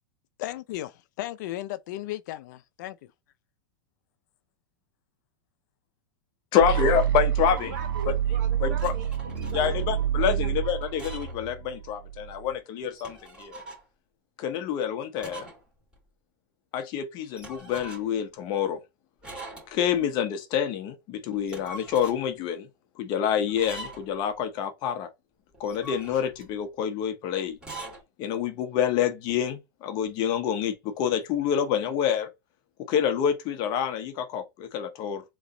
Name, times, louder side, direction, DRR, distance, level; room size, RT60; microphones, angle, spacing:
voice 1, 0.4-3.1, left 15 dB, 60° left, 0.5 m, -35 dB
voice 2, 6.5-7.7 8.1-8.2 8.6-8.9 9.5-13.6 14.4-15.5 16.7-18.8 19.7-22.7 23.0-25.1 25.6-27.6 28.2-32.3 32.8-35.2, left 8 dB, 40° left, 0.9 m, -27 dB
sound 1, 6.6-12.5, right 10 dB, 75° right, 1.0 m, -28 dB
voice 3, 7.2-10.0 10.4-10.9, right 6 dB, 60° right, 1.9 m, -42 dB
sound 2, 8.8-9.6 10.8-11.5 11.8-11.9 12.8-13.9 15.2-15.6 15.9-16.0 17.4-18.2 19.2-19.9 21.3-22.2 23.5-24.2 25.5-26.5 27.5-28.0, right 2 dB, 10° right, 2.6 m, -42 dB
4.0 x 3.1 x 3.8 m
supercardioid pair, 145°, 11 cm